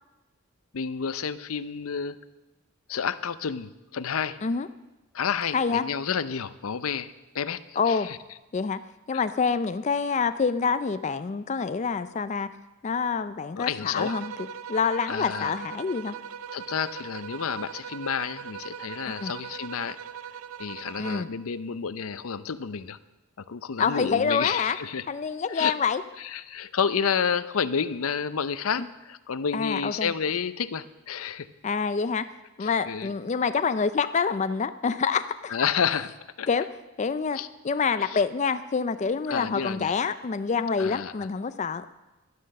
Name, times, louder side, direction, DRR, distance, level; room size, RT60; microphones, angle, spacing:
voice 1, 0.7-2.2 2.9-4.4 5.1-7.6 7.9-8.2 9.1-9.2 13.6-14.2 15.1-15.5 16.5-20.0 20.6-23.0 23.4-25.1 25.5-25.7 26.2-31.5 32.6-33.1 35.5-36.1 36.4-36.5 37.3-37.5 38.0-38.2 39.3-39.9 40.8-41.3, left 6 dB, 85° left, 14 dB, 0.6 m, -30 dB
voice 2, 5.5-5.8 7.8-8.1 8.5-8.8 9.1-12.5 12.8-14.3 14.7-16.1 19.1-19.3 21.0-21.3 23.8-24.8 25.1-26.0 29.5-30.1 31.6-32.2 32.6-35.5 36.5-36.7 37.0-37.4 37.6-41.9, left 5 dB, 35° left, 11 dB, 0.4 m, -26 dB
sound 1, 13.9-21.4, right 8 dB, 80° right, 0.5 m, -40 dB
11.5 x 11.5 x 6.5 m, 1.0 s
head